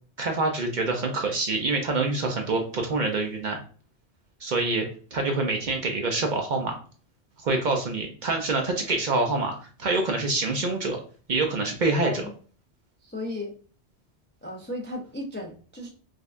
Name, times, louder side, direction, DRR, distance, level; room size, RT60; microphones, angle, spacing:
voice 1, 0.2-3.6 4.4-4.9 5.1-6.8 7.4-9.5 9.8-11.0 11.3-12.3, right 3 dB, 50° right, 3 dB, 0.7 m, -26 dB
voice 2, 13.0-13.5 14.4-15.9, left 1 dB, 15° left, 0 dB, 0.4 m, -35 dB
4.9 x 2.2 x 2.5 m, 0.41 s
omnidirectional pair, 1.1 m